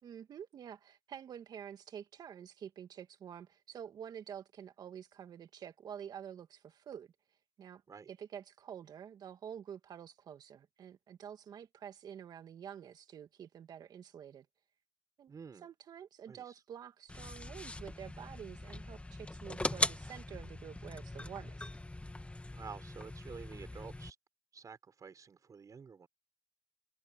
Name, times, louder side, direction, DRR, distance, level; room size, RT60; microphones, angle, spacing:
voice 1, 0.0-7.1 7.6-14.5 15.2-15.3 15.6-21.7, right 8 dB, 70° right, 2.4 m, -48 dB
voice 2, 15.3-15.7 16.3-16.6 22.5-24.2 24.5-26.1, right 6 dB, 55° right, 6.4 m, -50 dB
sound 1, 17.1-24.1, left 2 dB, 15° left, 1.8 m, -40 dB
supercardioid pair, 50°, 7 cm